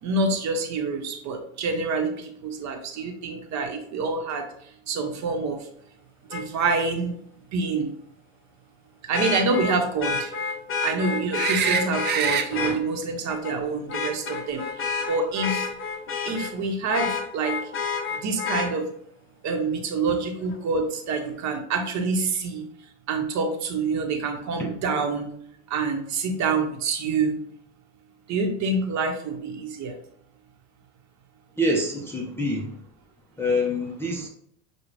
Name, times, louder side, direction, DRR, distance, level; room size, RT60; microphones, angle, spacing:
voice 1, 0.0-4.4 4.9-5.6 6.3-7.1 7.5-7.9 9.1-10.3 10.8-15.7 16.2-17.6 18.2-18.9 19.4-22.6 23.1-25.3 25.7-27.4 28.3-30.0, right 4 dB, 45° right, 3 dB, 1.0 m, -27 dB
Vehicle horn car horn honking, 6.3-6.4 9.1-12.8 13.3-13.5 13.9-16.5 16.9-18.7 20.5-20.6, left 5 dB, 30° left, 0.8 m, -29 dB
sound 1, 11.3-12.5 15.4-15.5, right 8 dB, 30° right, 0.3 m, -25 dB
voice 2, 31.6-32.8 33.4-34.3, left 1 dB, 5° left, -3 dB, 0.6 m, -26 dB
6.4 x 2.4 x 3.1 m, 0.68 s
supercardioid pair, 115°, 40 cm